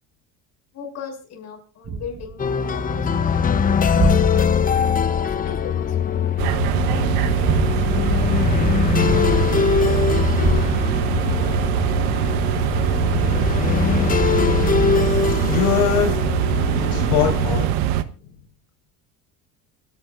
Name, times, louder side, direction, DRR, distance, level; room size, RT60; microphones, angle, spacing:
voice 1, 0.7-3.6 3.9-4.7 5.1-8.8, left 6 dB, 45° left, 1 dB, 6.3 m, -39 dB
sound 1, 1.8-6.9 7.4-9.8 10.4-12.4 12.9-13.0, right 5 dB, 35° right, 1.7 m, -29 dB
sound 2, 2.4-17.7, left 6 dB, 20° left, 0.9 m, -22 dB
sound 3, 6.4-18.0, right 11 dB, 80° right, 1.3 m, -22 dB
voice 2, 15.5-16.2 16.9-17.8, left 8 dB, 70° left, 1 dB, 5.3 m, -21 dB
28.5 x 10.0 x 2.6 m, 0.36 s
cardioid pair, 130°, 38 cm